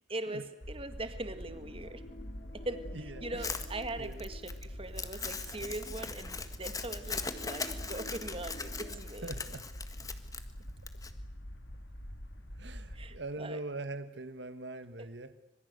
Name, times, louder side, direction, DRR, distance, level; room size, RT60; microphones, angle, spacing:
voice 1, 0.1-2.0 2.5-9.3 12.9-13.6, right 2 dB, 30° right, 10 dB, 1.9 m, -41 dB
sound 1, 0.6-13.2, equal, 80° left, 3.0 m, -45 dB
sound 2, 1.3-5.7 6.0-6.1 6.8-9.0, left 2 dB, 35° left, 3.7 m, -52 dB
voice 2, 2.9-3.6 4.0-4.2 9.2-9.7 10.7-10.8 12.5-15.4, right 2 dB, 65° right, 11 dB, 1.4 m, -42 dB
Crumpling crinkling, 3.4-11.1, left 4 dB, 20° left, 1.7 m, -40 dB
26.0 x 23.0 x 8.1 m, 1.0 s
head